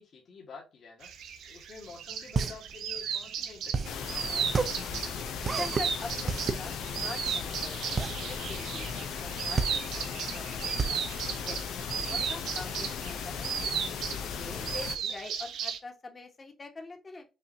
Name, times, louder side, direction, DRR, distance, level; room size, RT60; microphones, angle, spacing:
voice 1, 0.0-4.7 15.0-15.1, left 4 dB, 55° left, 0 dB, 1.6 m, -49 dB
sound 1, 1.0-15.8, right 8 dB, 80° right, 0.8 m, -36 dB
sound 2, 1.9-12.2, right 4 dB, 40° right, 0.6 m, -32 dB
sound 3, 3.8-15.0, left 7 dB, 80° left, 0.6 m, -37 dB
voice 2, 5.5-7.8 8.3-11.0 11.4-11.6 11.9-13.7 14.1-17.2, left 3 dB, 30° left, 4 dB, 1.3 m, -44 dB
5.6 x 2.7 x 2.7 m, 0.28 s
cardioid pair, 90°, 0 cm